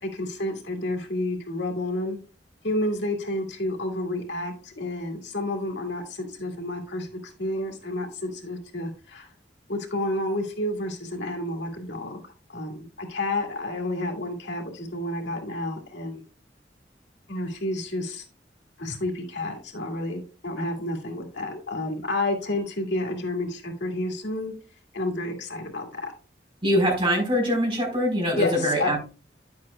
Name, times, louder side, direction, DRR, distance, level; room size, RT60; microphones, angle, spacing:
voice 1, 0.0-2.2 2.6-9.3 9.7-16.2 17.3-18.3 18.8-24.5 24.9-26.1 28.3-29.0, left 1 dB, 85° left, 2 dB, 2.0 m, -30 dB
voice 2, 26.6-29.0, equal, 30° right, -1 dB, 4.4 m, -23 dB
10.5 x 7.7 x 2.3 m, 0.35 s
head